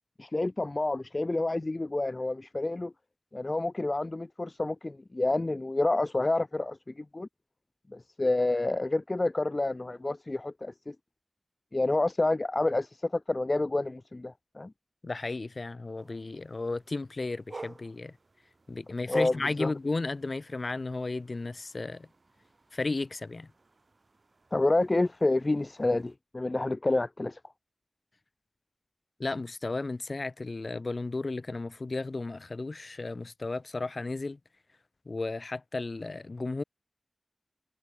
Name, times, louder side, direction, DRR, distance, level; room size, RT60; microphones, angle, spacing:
voice 1, 0.2-2.9 3.3-7.3 7.9-10.9 11.7-14.7 19.1-19.7 24.5-27.4, left 2 dB, 45° left, 0.8 m, -29 dB
voice 2, 15.0-18.1 18.7-22.1 22.7-23.5 29.2-34.4 35.1-36.6, left 3 dB, 65° left, 2.4 m, -34 dB
sound 1, 15.9-26.1, right 3 dB, 60° right, 3.4 m, -51 dB
wide cardioid pair, 55°, 0 cm